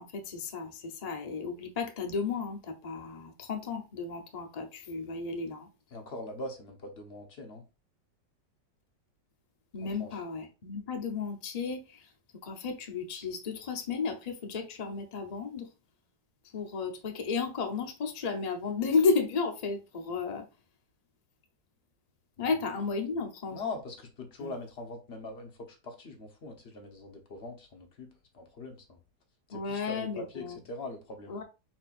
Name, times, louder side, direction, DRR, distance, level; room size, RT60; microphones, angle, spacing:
voice 1, 0.0-5.7 9.7-12.1 12.4-15.7 16.5-20.5 22.4-23.6 24.4-24.5 29.5-30.6 31.3-31.4, left 4 dB, 85° left, 0.3 m, -33 dB
voice 2, 5.9-7.6 9.8-10.2 22.4-22.5 23.5-29.0 29.5-31.4, left 2 dB, 45° left, 0.9 m, -42 dB
4.9 x 4.4 x 2.5 m
omnidirectional pair, 1.9 m